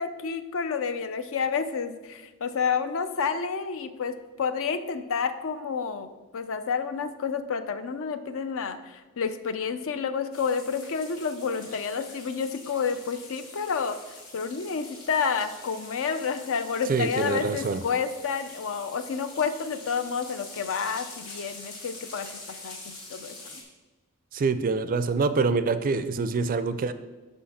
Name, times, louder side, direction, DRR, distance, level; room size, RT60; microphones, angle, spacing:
voice 1, 0.0-4.1 4.4-6.1 6.3-8.8 9.2-13.9 14.3-22.3 22.6-23.6, left 6 dB, 60° left, 11 dB, 0.5 m, -29 dB
sound 1, 10.3-23.6, left 2 dB, 80° left, 2.0 m, -45 dB
voice 2, 16.9-17.8 24.3-26.9, right 4 dB, 40° right, 12 dB, 0.4 m, -25 dB
6.4 x 5.4 x 5.7 m, 1.3 s
head